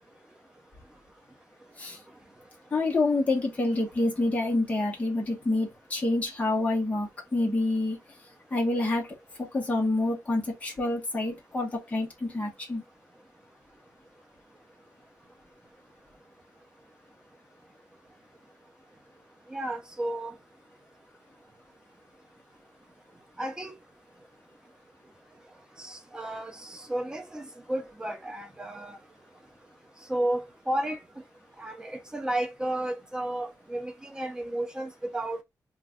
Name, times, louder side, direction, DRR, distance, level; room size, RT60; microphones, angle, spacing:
voice 1, 2.7-8.0 8.5-9.1 9.4-12.8, left 2 dB, 20° left, 0.9 m, -27 dB
voice 2, 19.5-20.3 23.4-23.7 25.8-29.0 30.1-31.0 31.6-35.4, right 1 dB, 10° right, 0.5 m, -32 dB
2.6 x 2.3 x 3.4 m
wide cardioid pair, 180°, 7 cm